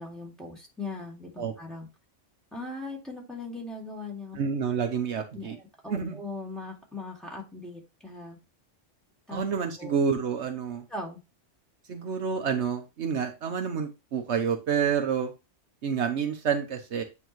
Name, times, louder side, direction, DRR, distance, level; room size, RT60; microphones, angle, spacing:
voice 1, 0.0-1.9 2.5-4.4 5.3-8.4 9.3-9.4 9.8-9.9 10.9-11.2, left 2 dB, ahead, -2 dB, 2.1 m, -39 dB
voice 2, 4.4-5.6 5.9-6.2 9.3-10.8 11.9-15.3 15.8-17.0, right 6 dB, 70° right, 5 dB, 1.1 m, -28 dB
9.1 x 3.5 x 3.1 m, 0.27 s
omnidirectional pair, 1.2 m